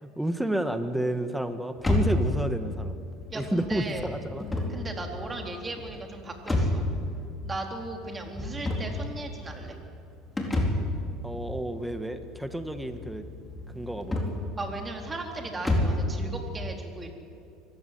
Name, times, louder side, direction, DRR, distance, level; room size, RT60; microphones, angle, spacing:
voice 1, 0.0-3.0 3.3-4.4 11.2-13.2 13.7-14.3, right 1 dB, 5° right, 8 dB, 1.6 m, -30 dB
sound 1, 1.8-16.1, left 1 dB, 15° left, 4.3 m, -31 dB
voice 2, 3.3-4.1 4.7-6.8 7.4-9.8 14.6-17.1, right 2 dB, 20° right, 2 dB, 3.9 m, -37 dB
24.0 x 15.5 x 9.5 m, 2.4 s
supercardioid pair, 100°, 0 cm